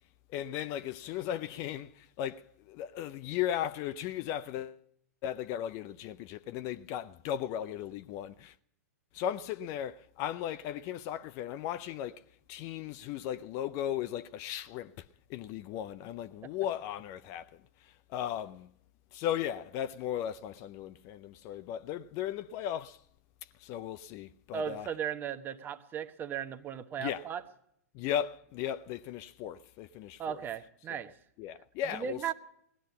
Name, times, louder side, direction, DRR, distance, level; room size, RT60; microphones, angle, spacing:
voice 1, 0.3-4.8 5.2-8.5 9.1-12.2 12.5-15.0 15.3-17.5 17.8-18.7 19.1-23.0 23.6-24.9 27.0-27.2 27.9-30.4 30.9-31.0 31.4-32.2, left 11 dB, 40° left, 0.6 m, -36 dB
voice 2, 24.5-27.4 30.2-31.1 31.9-32.3, right 8 dB, 25° right, 1.1 m, -36 dB
18.0 x 12.5 x 5.5 m
figure-of-eight pair, 105°, 9 cm